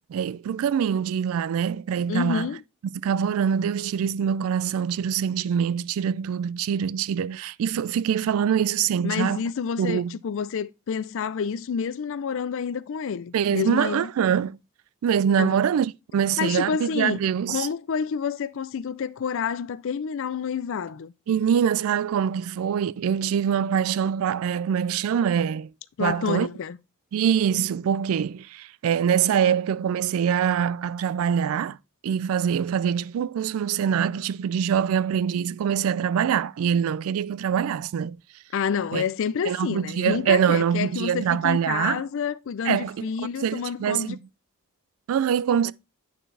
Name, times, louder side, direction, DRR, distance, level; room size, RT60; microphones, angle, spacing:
voice 1, 0.1-2.5 3.0-9.4 9.8-10.1 13.3-14.6 15.0-17.7 21.3-25.7 26.0-26.5 27.1-31.8 32.0-38.2 38.9-39.0 39.5-42.0 42.6-43.1 43.4-44.2 45.1-45.7, right 8 dB, 70° right, 0.3 m, -24 dB
voice 2, 2.1-2.6 9.0-14.1 15.4-15.6 16.4-17.2 17.5-21.1 26.0-26.8 38.5-44.2 45.6-45.7, left 6 dB, 60° left, 0.4 m, -28 dB
8.9 x 4.3 x 3.3 m
head